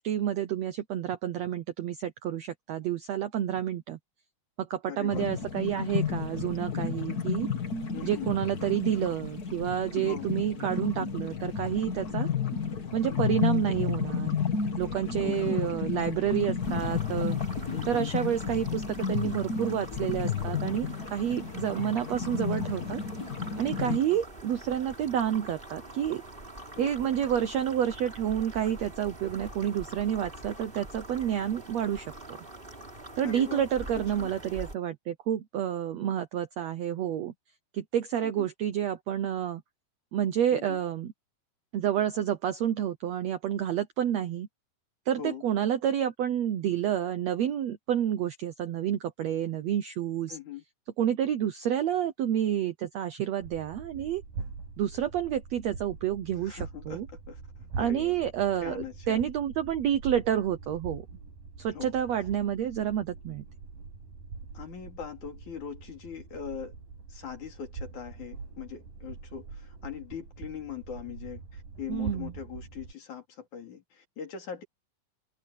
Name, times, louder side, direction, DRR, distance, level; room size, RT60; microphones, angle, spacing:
voice 1, 0.0-4.0 4.6-7.5 8.0-12.3 12.9-14.4 14.8-17.4 17.9-23.0 23.6-26.2 26.8-32.4 33.2-37.3 37.7-39.6 40.1-41.1 41.7-44.5 45.1-50.4 51.0-54.2 54.8-57.1 57.8-61.0 61.6-63.4 71.9-72.3, right 10 dB, 65° right, 1.8 m, -29 dB
voice 2, 4.9-5.3 7.9-8.3 10.0-10.3 13.4-13.5 15.2-15.6 17.7-18.1 23.8-24.2 26.8-27.1 33.2-33.6 33.9-34.3 38.2-38.5 40.5-40.8 45.2-45.4 50.3-50.6 56.4-57.4 57.8-58.2 58.6-59.3 61.7-61.9 64.5-66.7 67.1-74.6, left 8 dB, 60° left, 4.3 m, -41 dB
sound 1, 5.1-24.0, left 6 dB, 35° left, 1.6 m, -32 dB
sound 2, 16.6-34.7, right 2 dB, 15° right, 3.6 m, -45 dB
sound 3, 53.4-72.9, right 4 dB, 85° right, 7.2 m, -43 dB
omnidirectional pair, 3.9 m